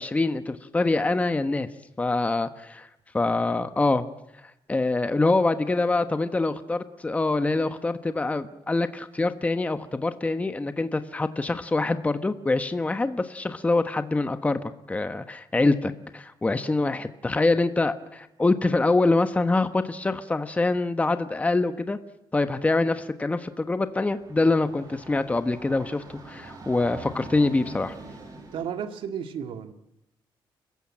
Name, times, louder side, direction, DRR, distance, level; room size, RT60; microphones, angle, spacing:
voice 1, 0.0-1.7 2.0-2.9 3.1-4.0 4.7-14.6 14.9-22.0 22.3-27.9, left 2 dB, 15° left, 10 dB, 1.2 m, -25 dB
Train, 23.9-28.8, right 2 dB, 45° right, 6.5 m, -44 dB
voice 2, 28.5-29.7, right 8 dB, 85° right, 8 dB, 2.1 m, -33 dB
29.5 x 15.5 x 8.7 m, 0.85 s
cardioid pair, 130°, 9 cm